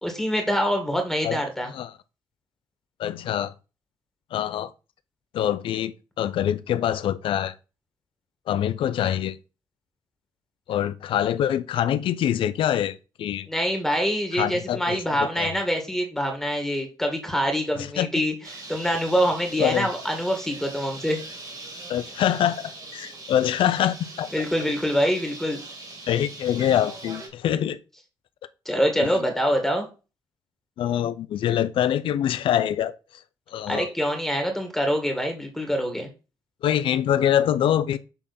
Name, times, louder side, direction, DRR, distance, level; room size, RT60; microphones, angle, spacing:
voice 1, 0.0-1.7 13.5-18.3 18.7-21.2 24.3-25.6 28.7-29.9 33.7-36.1, equal, 5° left, 2.0 m, -25 dB
voice 2, 3.0-3.5 4.3-4.7 5.3-7.5 8.5-9.4 10.7-13.5 14.3-15.0 15.4-15.5 17.7-18.2 19.6-19.9 21.9-24.3 26.1-27.8 29.0-29.1 30.8-32.9 33.5-33.9 36.6-38.0, left 10 dB, 75° left, 0.5 m, -24 dB
Bird, 18.4-27.3, right 2 dB, 45° right, 2.8 m, -41 dB
6.8 x 3.5 x 4.2 m
cardioid pair, 70°, 9 cm